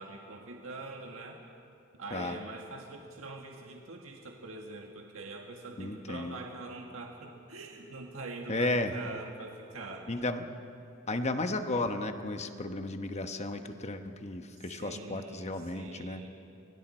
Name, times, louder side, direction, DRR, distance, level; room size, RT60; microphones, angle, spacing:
voice 1, 0.0-1.4 1.9-10.1 14.8-16.3, right 3 dB, 90° right, 1 dB, 1.7 m, -44 dB
voice 2, 5.8-6.4 8.5-8.9 10.1-10.5 11.1-16.3, left 2 dB, 35° left, 7 dB, 1.1 m, -34 dB
30.0 x 23.0 x 4.4 m, 2.7 s
head